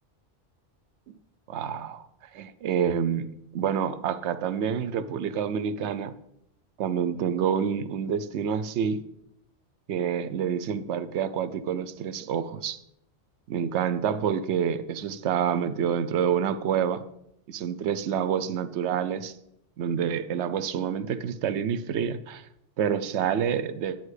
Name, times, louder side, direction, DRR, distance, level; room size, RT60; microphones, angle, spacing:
voice 1, 1.5-2.1 2.3-6.1 6.8-9.0 9.9-12.8 13.5-17.0 17.5-19.4 19.8-22.5 22.8-24.0, right 8 dB, 70° right, 13 dB, 0.9 m, -28 dB
10.5 x 9.3 x 3.2 m, 0.77 s
omnidirectional pair, 1.2 m